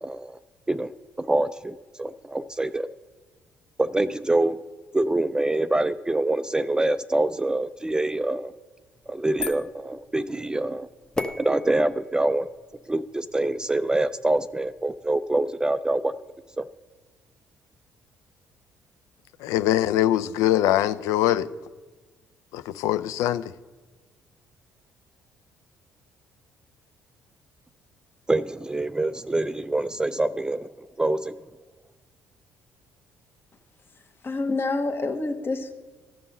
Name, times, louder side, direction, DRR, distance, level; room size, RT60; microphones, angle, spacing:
voice 1, 0.0-0.4 0.7-0.9 1.2-2.9 3.8-4.6 4.9-8.5 9.1-10.9 11.4-12.5 12.9-16.1 16.6-16.7 28.3-31.3, right 2 dB, 15° right, 0.3 m, -25 dB
sound 1, 8.9-15.2, left 2 dB, 15° left, 0.8 m, -38 dB
voice 2, 19.4-21.5 22.5-23.4, left 13 dB, 65° left, 0.4 m, -22 dB
voice 3, 34.2-35.7, left 3 dB, 40° left, 1.2 m, -27 dB
14.0 x 5.3 x 6.6 m
figure-of-eight pair, 50°, 6 cm